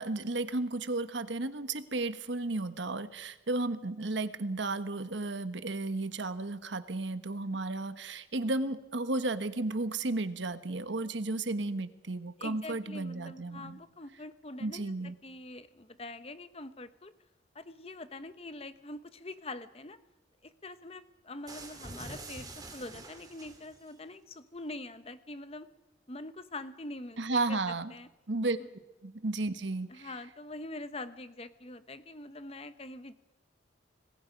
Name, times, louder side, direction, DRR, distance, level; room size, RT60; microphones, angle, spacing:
voice 1, 0.0-13.8 14.6-15.1 27.2-27.9 28.3-28.6 29.0-30.1, right 2 dB, 75° right, 11 dB, 1.2 m, -33 dB
voice 2, 12.4-17.1 17.5-20.0 20.4-25.7 26.1-27.6 27.9-28.1 29.9-33.1, left 2 dB, 30° left, 12 dB, 1.0 m, -44 dB
sound 1, 21.5-23.9, right 2 dB, 20° right, 2.8 m, -46 dB
26.5 x 20.0 x 5.2 m, 1.0 s
head